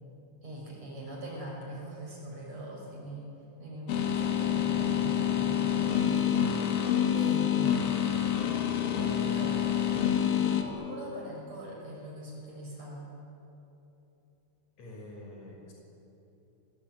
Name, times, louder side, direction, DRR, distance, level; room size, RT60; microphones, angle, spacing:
voice 1, 0.4-3.3 3.6-6.9 7.1-8.0 9.2-9.6 10.4-13.1, right 1 dB, 35° right, -2 dB, 6.9 m, -41 dB
sound 1, 3.9-10.6, left 9 dB, 80° left, 4.3 m, -27 dB
voice 2, 14.8-15.7, left 1 dB, 35° left, -1 dB, 6.9 m, -46 dB
27.5 x 22.0 x 9.2 m, 3.0 s
omnidirectional pair, 5.5 m